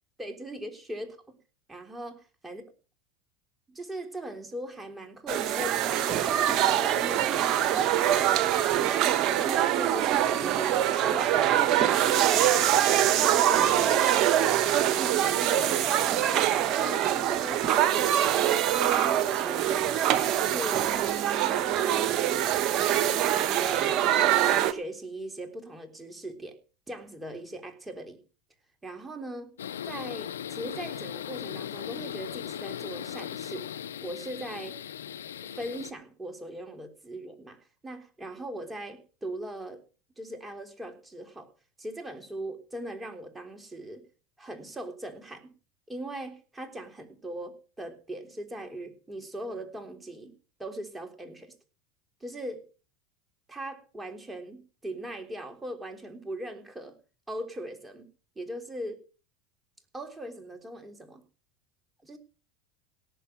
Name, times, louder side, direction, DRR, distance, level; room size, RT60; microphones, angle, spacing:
voice 1, 0.2-1.4 1.7-2.6 3.7-9.0 9.3-14.0 14.3-16.0 16.5-26.6 26.9-28.2 28.8-29.5 29.9-33.7 34.0-34.8 35.4-37.6 37.8-39.8 40.2-41.5 41.8-44.1 44.4-45.5 45.9-51.5 52.2-52.7 53.5-57.0 57.3-58.1 58.4-59.1 59.9-61.2 62.0-62.2, right 1 dB, 10° right, 5 dB, 3.5 m, -40 dB
sound 1, 5.3-24.7, right 11 dB, 50° right, 1.4 m, -24 dB
sound 2, 29.6-35.9, left 9 dB, 85° left, 0.7 m, -38 dB
18.0 x 6.8 x 6.4 m, 0.35 s
hypercardioid pair, 85°, 0 cm